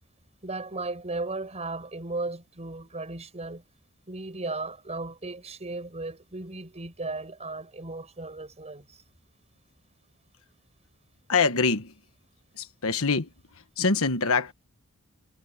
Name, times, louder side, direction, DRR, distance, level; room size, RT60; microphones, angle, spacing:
voice 1, 0.4-3.6 4.1-8.8, right 3 dB, 30° right, 6.1 m, -35 dB
voice 2, 11.3-11.9 12.6-13.3 13.8-14.5, left 4 dB, 65° left, 1.4 m, -24 dB
head